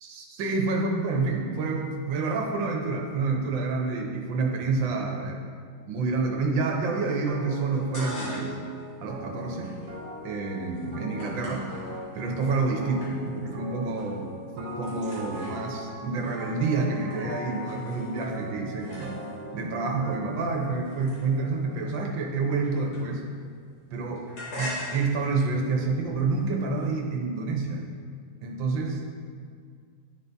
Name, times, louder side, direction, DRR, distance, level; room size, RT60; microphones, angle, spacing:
voice 1, 0.0-5.5 5.9-8.6 9.0-9.8 10.2-11.7 12.1-14.3 14.6-19.1 19.5-23.2 23.9-24.3 24.6-27.9 28.4-29.0, right 3 dB, 85° right, 1 dB, 1.6 m, -28 dB
sound 1, 7.3-21.9, right 1 dB, 30° right, 1.1 m, -40 dB
sound 2, 7.7-8.7 9.0-12.6 13.0-13.5 13.8-14.2 14.5-19.6 20.2-23.4 23.7-26.9, left 1 dB, 85° left, 2.4 m, -43 dB
10.5 x 4.0 x 3.4 m, 2.1 s
omnidirectional pair, 2.0 m